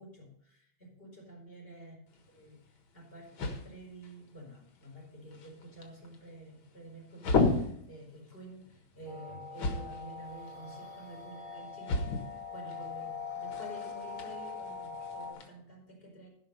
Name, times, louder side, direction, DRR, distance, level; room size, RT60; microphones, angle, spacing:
voice 1, 0.0-2.0 2.3-12.1 12.5-16.3, right 1 dB, 25° left, -2 dB, 5.0 m, -50 dB
sound 1, 2.1-15.5, left 3 dB, 90° left, 2.4 m, -37 dB
sound 2, 9.1-15.3, left 5 dB, 60° left, 2.8 m, -42 dB
14.5 x 5.9 x 5.3 m, 0.69 s
omnidirectional pair, 2.2 m